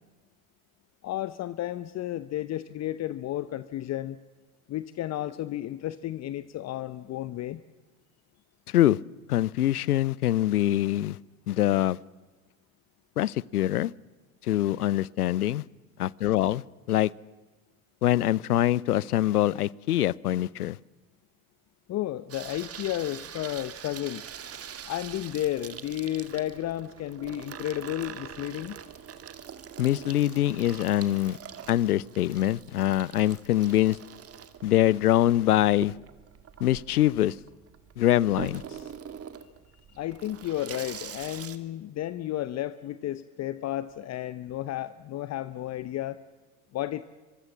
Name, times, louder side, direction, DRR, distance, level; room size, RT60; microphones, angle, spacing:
voice 1, 1.0-4.2 4.7-7.6 21.9-24.2 24.8-28.8 39.9-46.2 46.7-47.0, left 13 dB, 35° left, 0.8 m, -32 dB
voice 2, 8.7-9.0 9.3-11.2 11.5-12.0 13.2-13.9 14.4-15.6 16.0-17.1 18.0-20.8 29.8-31.4 31.7-34.0 34.6-35.9 36.6-37.4 38.0-38.6, left 13 dB, 80° left, 0.7 m, -24 dB
Water tap faucet / Sink (filling or washing), 22.3-41.6, right 8 dB, 30° right, 1.9 m, -44 dB
25.0 x 23.0 x 7.4 m
figure-of-eight pair, 70°, 45 cm